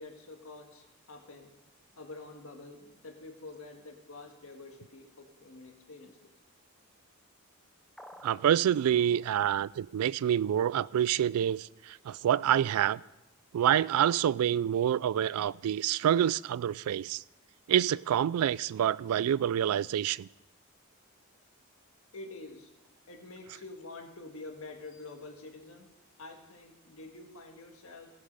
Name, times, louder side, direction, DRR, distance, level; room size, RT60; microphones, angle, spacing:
voice 1, 0.0-1.5 1.9-6.3 22.1-22.7 23.1-25.9 26.2-28.1, left 2 dB, 75° left, 1.6 m, -47 dB
sound 1, 8.0-8.6, equal, ahead, 0.6 m, -50 dB
voice 2, 8.2-13.0 13.5-17.2 17.7-20.3, right 10 dB, 85° right, 0.3 m, -27 dB
16.5 x 6.5 x 5.4 m
head